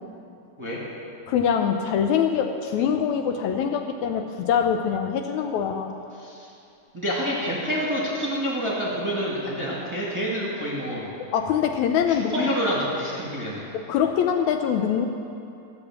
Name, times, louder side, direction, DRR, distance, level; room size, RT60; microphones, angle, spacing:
voice 1, 1.3-5.9 11.3-12.5 13.7-15.1, left 8 dB, 80° left, 5 dB, 1.9 m, -24 dB
voice 2, 6.9-11.1 12.1-13.6, equal, 10° right, -6 dB, 1.6 m, -28 dB
13.5 x 7.7 x 7.4 m, 2.6 s
omnidirectional pair, 3.5 m